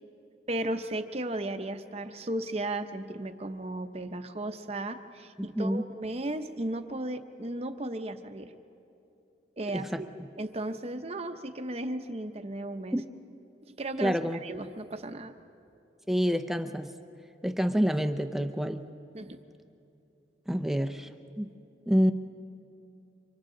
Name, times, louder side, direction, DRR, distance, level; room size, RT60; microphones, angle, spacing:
voice 1, 0.5-8.5 9.6-10.1 10.4-13.0 13.8-14.1 14.4-15.3 19.1-19.4, right 1 dB, 35° right, 8 dB, 0.8 m, -35 dB
voice 2, 14.0-14.4 16.1-16.9 17.4-18.8 20.5-21.1 21.4-21.5 21.9-22.1, equal, ahead, 6 dB, 0.5 m, -27 dB
28.5 x 25.5 x 3.8 m, 2.7 s
head